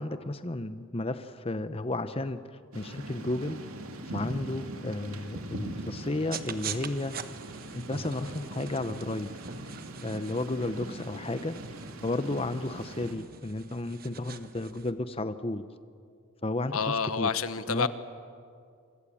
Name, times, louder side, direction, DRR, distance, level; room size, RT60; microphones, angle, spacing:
voice 1, 0.0-3.6 4.1-7.1 7.7-9.3 10.0-11.5 12.0-15.6 16.4-17.3 17.7-17.9, left 2 dB, 25° left, 11 dB, 0.8 m, -33 dB
Thunder / Rain, 2.7-13.1, right 1 dB, 85° right, 2.6 m, -41 dB
sound 1, 6.3-14.9, right 7 dB, 45° right, 1.2 m, -44 dB
voice 2, 16.7-17.9, left 5 dB, 85° left, 12 dB, 1.2 m, -28 dB
27.5 x 25.0 x 8.6 m, 2.3 s
head